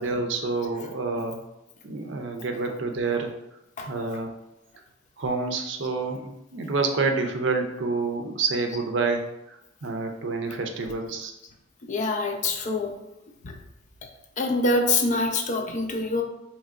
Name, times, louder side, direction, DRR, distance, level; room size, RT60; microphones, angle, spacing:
voice 1, 0.0-1.4 1.8-3.4 3.9-4.3 5.2-11.3, right 3 dB, 70° right, 4 dB, 0.5 m, -28 dB
voice 2, 11.9-12.9 13.4-13.5 14.4-16.2, left 2 dB, 40° left, 3 dB, 0.5 m, -25 dB
4.5 x 3.0 x 2.5 m, 0.90 s
head